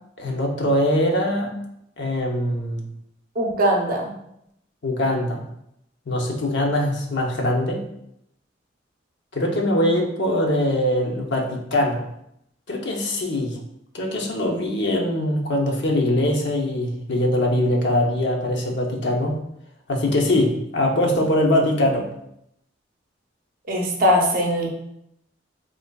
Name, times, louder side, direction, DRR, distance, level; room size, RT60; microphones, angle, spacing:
voice 1, 0.2-1.5 2.0-2.8 4.8-5.4 6.1-7.8 9.3-12.1 12.7-13.6 13.9-19.4 19.9-22.1, left 1 dB, 65° left, 0 dB, 0.6 m, -22 dB
voice 2, 3.4-4.1 23.7-24.7, equal, 50° right, 1 dB, 0.6 m, -20 dB
3.8 x 3.0 x 2.2 m, 0.78 s
head